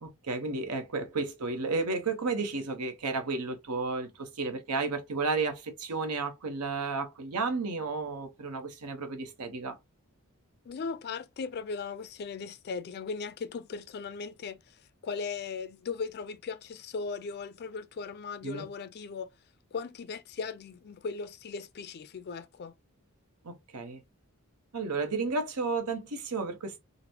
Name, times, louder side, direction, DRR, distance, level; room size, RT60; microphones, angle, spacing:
voice 1, 0.0-9.8 18.4-18.7 23.4-24.0 24.7-26.8, right 3 dB, 90° right, 0.9 m, -32 dB
voice 2, 10.7-19.3 19.7-22.7, left 5 dB, 45° left, 0.4 m, -38 dB
3.8 x 2.1 x 2.7 m
head